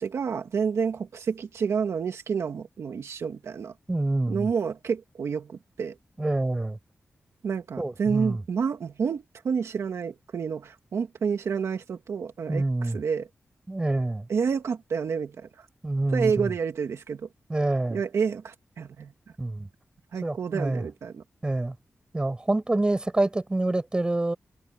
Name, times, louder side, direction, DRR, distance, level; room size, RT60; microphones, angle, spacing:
voice 1, 0.0-3.7 4.3-6.0 7.4-13.3 14.3-15.7 16.1-17.3 17.9-19.1 20.1-21.2, right 6 dB, 80° right, 2.1 m, -29 dB
voice 2, 3.9-4.5 6.2-6.8 7.8-8.4 12.5-13.0 13.7-14.3 15.8-16.5 17.5-18.0 19.4-19.7 20.2-20.9 21.4-21.8 22.1-24.4, right 2 dB, 20° right, 7.9 m, -26 dB
wide cardioid pair, 130°, 5 cm